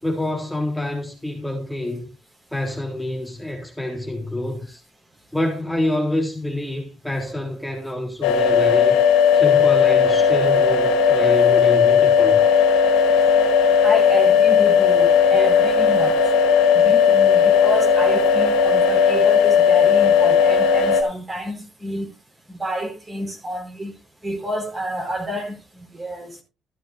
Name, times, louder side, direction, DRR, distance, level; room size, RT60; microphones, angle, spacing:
voice 1, 0.0-2.0 2.5-4.8 5.3-9.0 9.3-12.4, left 1 dB, 5° left, 3.6 m, -27 dB
sound 1, 8.2-21.0, left 6 dB, 85° left, 1.8 m, -16 dB
voice 2, 13.8-16.1 16.7-22.1 22.6-23.9 24.2-25.6 25.9-26.4, equal, 30° right, 4.5 m, -29 dB
14.5 x 11.0 x 2.6 m
supercardioid pair, 70°, 0 cm